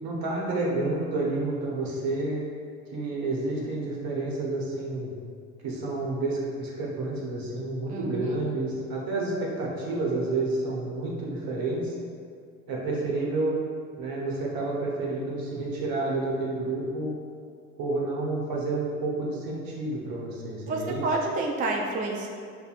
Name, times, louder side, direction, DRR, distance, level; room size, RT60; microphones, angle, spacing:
voice 1, 0.0-2.4 2.9-5.1 5.6-12.0 12.7-13.5 14.0-17.1 17.8-21.0, right 2 dB, 65° right, -3 dB, 1.1 m, -29 dB
voice 2, 7.9-8.3 20.7-22.3, right 2 dB, 25° right, 0 dB, 0.3 m, -29 dB
5.4 x 2.2 x 2.5 m, 2.2 s
supercardioid pair, 75°, 37 cm